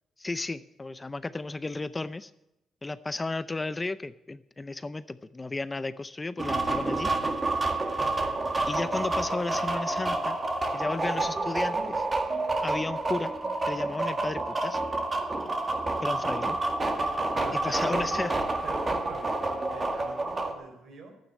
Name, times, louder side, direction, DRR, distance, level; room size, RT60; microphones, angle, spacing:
voice 1, 0.2-2.3 2.8-7.1 8.7-10.4 10.7-12.1 12.6-13.3 13.7-14.8 16.0-16.6 17.5-18.3, left 2 dB, 20° left, 15 dB, 0.5 m, -33 dB
sound 1, 6.4-20.5, right 2 dB, 25° right, 1.9 m, -29 dB
voice 2, 17.3-18.4 18.6-21.1, right 3 dB, 60° right, 4 dB, 3.9 m, -42 dB
11.5 x 9.1 x 8.5 m, 0.90 s
cardioid pair, 90°, 0 cm